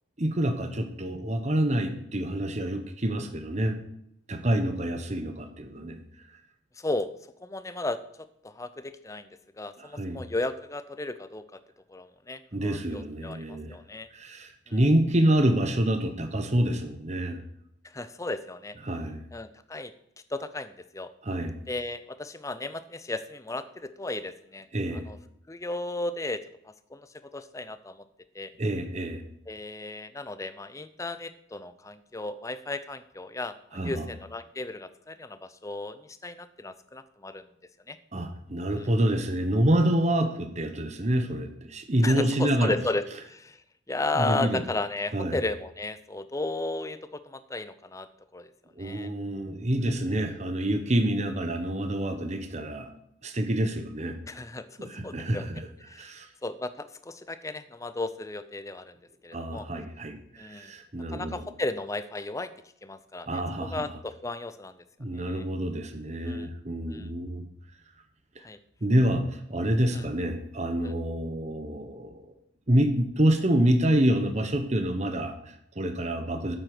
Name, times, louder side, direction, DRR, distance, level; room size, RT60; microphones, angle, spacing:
voice 1, 0.2-3.8 4.3-6.0 9.8-10.2 12.5-13.8 14.1-17.4 18.8-19.2 21.2-21.5 24.7-25.1 28.6-29.2 33.7-34.1 38.1-42.7 44.1-44.6 45.1-45.4 48.8-52.9 53.2-54.2 54.8-56.3 59.3-61.4 63.3-63.8 65.0-67.4 68.3-68.4 68.8-72.3 72.7-76.6, right 1 dB, 35° right, 7 dB, 1.2 m, -27 dB
voice 2, 6.8-7.1 7.4-9.3 9.6-11.6 11.9-14.1 14.7-14.8 17.8-18.8 19.3-19.9 20.3-21.1 21.7-24.7 24.9-25.2 25.5-28.0 28.3-28.5 29.5-37.4 37.9-38.0 38.8-38.9 42.0-43.6 43.9-48.1 48.3-48.5 48.8-49.1 54.3-55.4 55.8-56.1 56.4-59.0 59.2-59.7 60.4-60.7 61.1-62.5 62.8-64.8 65.1-65.5 66.2-66.5 66.9-67.1 68.4-68.6 69.9-70.1 70.8-70.9, left 2 dB, 15° left, 12 dB, 0.6 m, -35 dB
8.7 x 8.0 x 6.2 m, 0.73 s
head